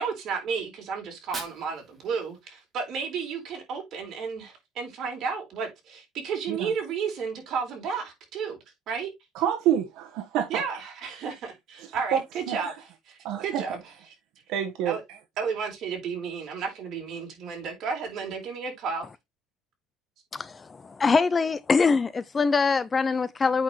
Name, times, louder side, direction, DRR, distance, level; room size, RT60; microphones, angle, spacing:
voice 1, 0.0-8.6 8.9-9.1 10.5-13.8 14.8-15.0 15.4-19.1, right 5 dB, 45° right, 4.0 m, -32 dB
Fire, 1.0-3.0, right 3 dB, 15° right, 2.7 m, -44 dB
voice 2, 9.3-10.6 12.1-12.6 13.2-13.6 14.5-14.9, right 10 dB, 70° right, 1.3 m, -27 dB
voice 3, 20.8-23.6, left 4 dB, 20° left, 0.4 m, -23 dB
8.4 x 5.8 x 3.1 m
cardioid pair, 145°, 0 cm